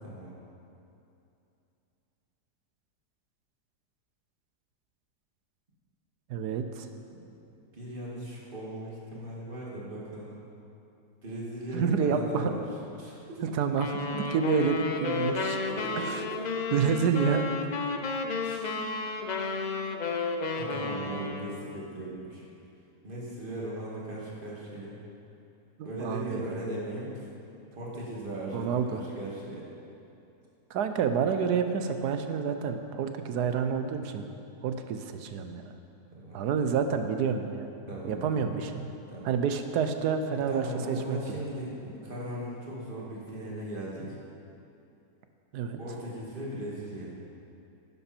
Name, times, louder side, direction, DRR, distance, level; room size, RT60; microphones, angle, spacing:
voice 1, 0.0-0.4 7.1-7.2 7.5-10.4 11.2-12.6 13.0-13.4 15.6-16.4 18.4-18.9 20.5-22.4 23.0-25.0 25.8-27.3 27.7-29.7 36.1-36.4 37.9-38.6 39.1-39.3 40.3-44.2 45.8-47.1, right 1 dB, 30° right, -5 dB, 2.4 m, -38 dB
voice 2, 6.3-6.9 11.7-12.5 13.4-15.6 16.1-16.2 16.7-17.5 25.8-26.4 28.5-29.0 30.7-34.3 34.6-35.7 36.3-37.7 38.0-38.9 39.2-41.2 45.5-45.8, right 6 dB, 80° right, 7 dB, 1.3 m, -28 dB
sound 1, 13.8-21.7, left 3 dB, 80° left, 0.4 m, -32 dB
11.0 x 11.0 x 4.4 m, 2.7 s
omnidirectional pair, 1.7 m